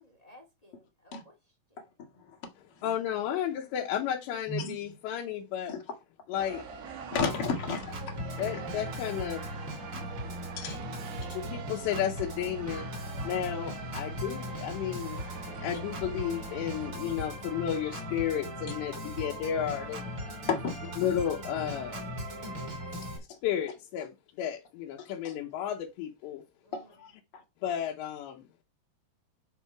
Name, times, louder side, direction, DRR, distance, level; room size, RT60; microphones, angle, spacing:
voice 1, 0.0-1.3 1.7-1.8 3.2-3.4 26.6-27.1, equal, 35° left, 0.5 m, -58 dB
voice 2, 2.8-5.7 6.3-6.6 8.4-9.4 10.8-10.9 11.3-15.2 15.6-20.1 21.0-22.0 23.4-26.4 27.6-28.5, left 10 dB, 85° left, 3.2 m, -33 dB
sound 1, 6.3-16.9, right 6 dB, 70° right, 3.7 m, -46 dB
voice 3, 7.1-7.9 8.3-8.4 9.9-10.1 10.6-10.8 11.2-11.3 20.5-20.7 25.0-25.3 26.7-27.4, left 5 dB, 60° left, 1.5 m, -33 dB
Organ, 7.2-23.2, equal, 35° right, 3.5 m, -38 dB
Banshee Scream Monster, 8.6-14.7, right 14 dB, 90° right, 3.0 m, -49 dB
11.5 x 4.2 x 4.7 m
omnidirectional pair, 5.0 m